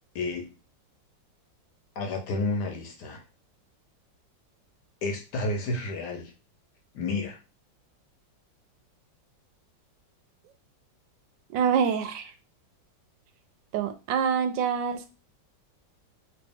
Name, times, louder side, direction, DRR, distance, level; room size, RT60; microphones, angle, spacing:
voice 1, 0.1-0.5 2.0-3.2 5.0-6.3 6.9-7.4, left 2 dB, 70° left, 1.3 m, -30 dB
voice 2, 11.5-12.3 13.7-15.1, right 7 dB, 80° right, 1.2 m, -26 dB
3.0 x 2.9 x 3.4 m
omnidirectional pair, 2.0 m